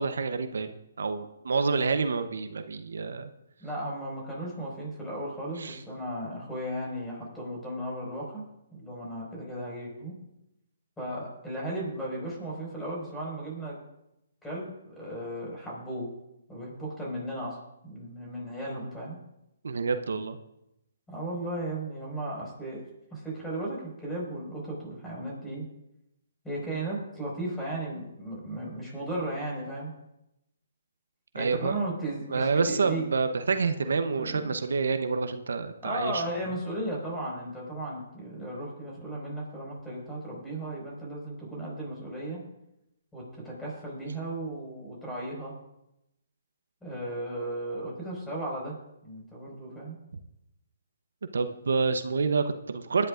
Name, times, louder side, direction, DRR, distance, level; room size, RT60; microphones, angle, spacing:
voice 1, 0.0-3.3 5.6-5.8 19.6-20.4 31.3-31.8 32.3-36.2 51.3-53.1, right 4 dB, 80° right, 9 dB, 0.8 m, -28 dB
voice 2, 3.6-8.4 8.7-10.2 11.0-13.8 14.4-16.1 16.5-17.6 17.8-19.2 21.1-22.8 23.1-25.7 26.4-29.9 31.4-33.0 33.8-33.9 34.2-34.5 35.8-42.4 43.1-45.5 46.8-48.8 49.0-50.0, right 1 dB, 5° left, -4 dB, 5.3 m, -35 dB
22.0 x 11.0 x 2.5 m, 0.86 s
hypercardioid pair, 150°, 0 cm